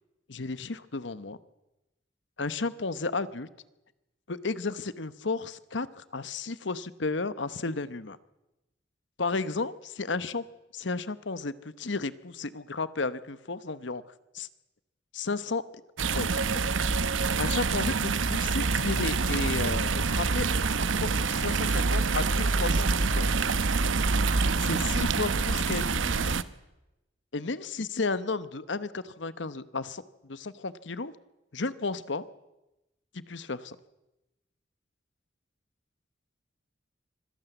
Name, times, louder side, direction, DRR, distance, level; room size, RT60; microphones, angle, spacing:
voice 1, 0.3-1.4 2.4-3.5 4.3-8.2 9.2-10.4 10.7-14.0 14.3-14.5 15.1-15.6 16.1-16.4 17.4-23.3 24.6-26.4 27.3-31.1 31.5-32.3 33.1-33.8, left 3 dB, 70° left, 15 dB, 1.0 m, -33 dB
sound 1, 16.0-26.4, right 4 dB, 85° right, 0.9 m, -26 dB
sound 2, 16.2-23.4, right 1 dB, 55° right, 3.2 m, -50 dB
25.0 x 17.0 x 8.0 m, 0.97 s
head